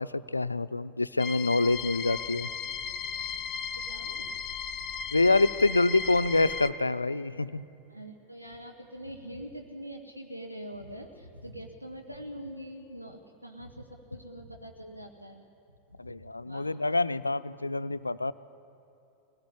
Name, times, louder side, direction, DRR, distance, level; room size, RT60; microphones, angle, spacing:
voice 1, 0.0-2.5 5.1-7.6 16.0-18.3, left 2 dB, 80° left, 14 dB, 0.5 m, -26 dB
sound 1, 1.2-6.7, left 6 dB, 35° left, 1.0 m, -36 dB
voice 2, 3.7-4.3 7.9-15.5 15.9-16.7, equal, 85° right, 3 dB, 1.4 m, -44 dB
22.5 x 18.0 x 9.9 m, 2.9 s
figure-of-eight pair, 90°, 0 cm